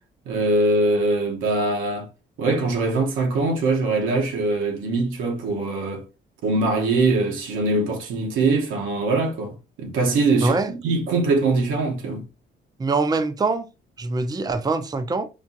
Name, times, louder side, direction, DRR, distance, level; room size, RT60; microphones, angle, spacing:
voice 1, 0.3-2.1 2.4-6.0 6.4-12.2, right 3 dB, 85° right, 1.1 m, -22 dB
voice 2, 10.4-10.7 12.8-13.6 14.0-15.3, right 3 dB, 20° right, 0.5 m, -23 dB
4.5 x 2.4 x 2.7 m
cardioid pair, 90°, 20 cm